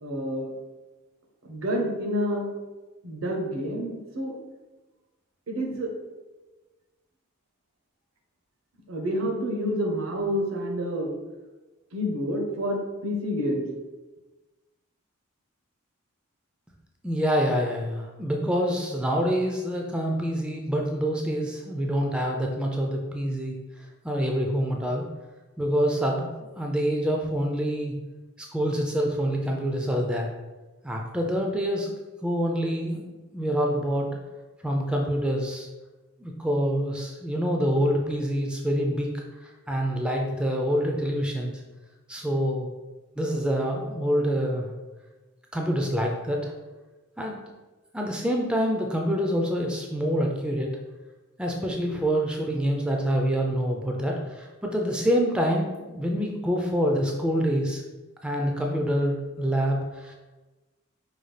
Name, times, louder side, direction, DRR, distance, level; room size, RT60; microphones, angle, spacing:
voice 1, 0.0-0.5 1.4-2.5 3.0-4.3 5.5-5.9 8.9-11.1 11.9-13.7, equal, 85° right, 1 dB, 0.8 m, -28 dB
voice 2, 17.0-23.6 24.0-25.1 25.6-26.3 26.6-27.9 28.5-30.3 30.8-31.9 32.2-34.1 34.6-35.7 36.2-39.1 39.4-41.5 42.1-42.7 43.2-44.7 45.5-46.5 47.2-47.4 47.9-50.7 51.4-57.8 58.2-60.1, equal, 5° right, 0 dB, 0.3 m, -26 dB
4.9 x 2.3 x 3.2 m, 1.2 s
head